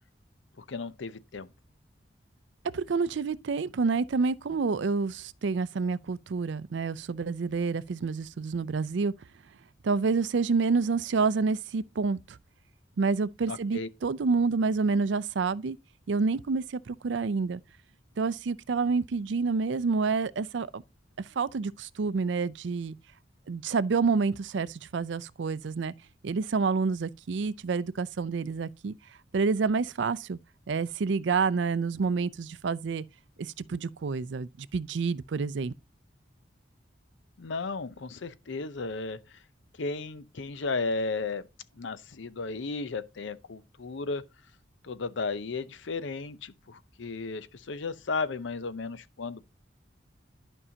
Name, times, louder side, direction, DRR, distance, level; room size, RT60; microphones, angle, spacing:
voice 1, 0.6-1.5 13.5-13.9 37.4-39.2 39.8-41.4 41.8-44.2 44.8-49.4, left 3 dB, 75° left, 0.6 m, -34 dB
voice 2, 2.7-9.1 9.8-12.4 13.0-15.8 16.1-17.6 18.2-20.8 21.4-23.0 23.5-25.9 26.2-28.9 29.3-30.4 30.7-33.0 33.4-35.7, right 4 dB, 70° right, 0.4 m, -28 dB
11.0 x 5.4 x 2.8 m
head